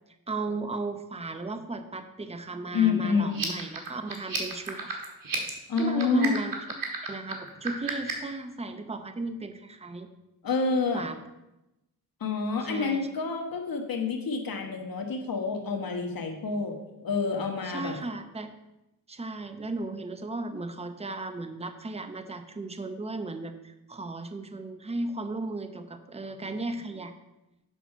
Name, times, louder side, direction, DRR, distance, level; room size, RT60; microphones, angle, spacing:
voice 1, 0.3-5.0 5.8-6.6 7.1-10.1 10.9-11.2 12.7-13.1 17.6-18.5 19.1-27.1, right 2 dB, 15° right, 8 dB, 0.8 m, -35 dB
voice 2, 2.7-3.4 5.7-6.3 10.4-11.0 12.2-18.0, left 5 dB, 70° left, 3 dB, 1.4 m, -28 dB
sound 1, 3.3-8.3, right 5 dB, 65° right, 1.7 m, -34 dB
7.3 x 5.8 x 5.7 m, 0.93 s
cardioid pair, 75°, 36 cm